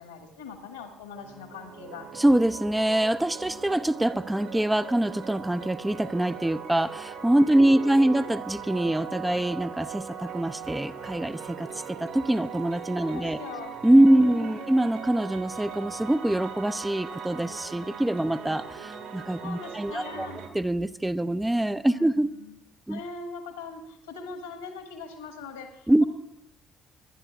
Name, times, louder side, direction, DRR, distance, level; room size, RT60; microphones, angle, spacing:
voice 1, 0.0-2.1 7.5-8.3 13.0-13.8 14.1-14.6 19.4-20.4 21.9-22.5 22.9-26.1, left 4 dB, 80° left, 5 dB, 1.9 m, -41 dB
sound 1, 1.1-20.5, right 7 dB, 70° right, 2.4 m, -40 dB
voice 2, 2.1-13.4 13.8-20.3 20.5-22.3 22.9-23.0 25.9-26.0, right 1 dB, 10° right, 11 dB, 0.5 m, -24 dB
25.0 x 11.5 x 2.5 m, 0.78 s
figure-of-eight pair, 45°, 0 cm